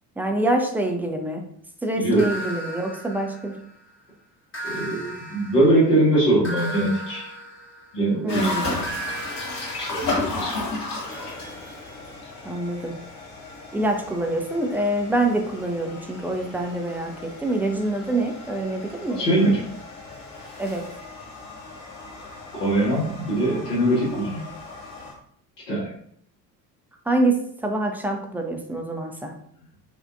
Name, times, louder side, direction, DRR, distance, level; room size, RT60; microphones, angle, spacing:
voice 1, 0.2-1.4 1.8-3.6 8.2-8.8 12.4-12.9 13.7-19.3 20.6-20.9 27.1-29.3, right 1 dB, 5° right, 2 dB, 0.6 m, -25 dB
sound 1, 2.2-3.9 4.5-8.2 8.8-12.5, right 1 dB, 25° left, 1.3 m, -37 dB
voice 2, 4.6-7.3 7.9-8.6 9.8-10.6 19.1-19.6 22.5-24.4 25.7-25.9, right 1 dB, 75° left, -6 dB, 1.8 m, -22 dB
sound 2, 8.3-25.1, left 3 dB, 45° left, 1.5 m, -35 dB
6.3 x 2.5 x 2.6 m, 0.66 s
figure-of-eight pair, 55°, 48 cm